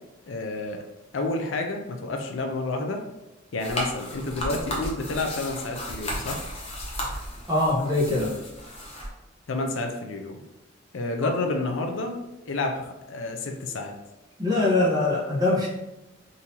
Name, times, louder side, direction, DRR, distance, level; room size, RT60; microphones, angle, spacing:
voice 1, 0.3-0.8 1.1-3.0 3.5-6.4 9.5-10.4 10.9-12.2 12.5-13.9, left 2 dB, 70° left, 4 dB, 0.5 m, -29 dB
sound 1, 3.6-9.1, equal, 30° left, 0.8 m, -34 dB
voice 2, 7.5-8.3 11.2-11.3 14.4-15.7, left 2 dB, 20° right, -5 dB, 0.9 m, -23 dB
3.7 x 2.7 x 2.8 m, 0.97 s
head